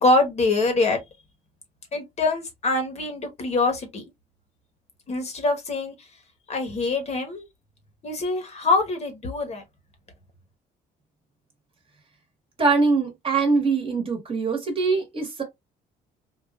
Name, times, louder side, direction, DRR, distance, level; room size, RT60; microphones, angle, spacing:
voice 1, 0.0-1.0 1.9-4.0 5.1-5.9 6.5-7.4 8.0-9.6, left 3 dB, 40° left, 1.1 m, -24 dB
voice 2, 12.6-15.4, right 4 dB, 30° right, 1.2 m, -23 dB
3.8 x 2.4 x 2.3 m
cardioid pair, 110°, 17 cm